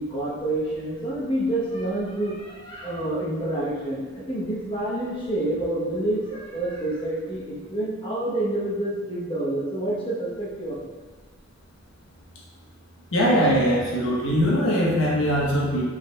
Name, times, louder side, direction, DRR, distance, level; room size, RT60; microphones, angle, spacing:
voice 1, 0.0-10.7, right 1 dB, 25° left, -7 dB, 1.0 m, -28 dB
voice 2, 13.1-15.8, equal, 80° left, -4 dB, 1.0 m, -21 dB
5.1 x 3.9 x 2.3 m, 1.3 s
head